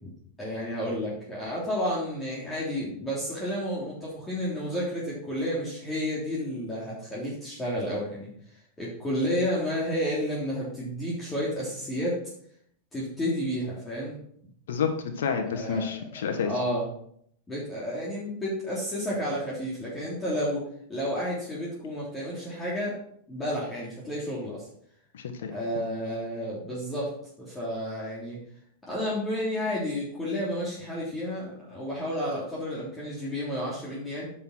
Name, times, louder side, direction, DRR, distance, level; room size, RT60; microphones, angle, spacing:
voice 1, 0.4-8.3 8.8-12.2 12.9-14.2 15.5-16.8 17.5-23.0 23.3-24.7 25.5-27.1 27.4-28.4 28.9-34.2, equal, 15° left, -7 dB, 3.4 m, -31 dB
voice 2, 14.7-16.5 25.1-25.5, left 6 dB, 80° left, 4 dB, 1.2 m, -29 dB
8.2 x 5.7 x 6.1 m, 0.67 s
hypercardioid pair, 120°, 0 cm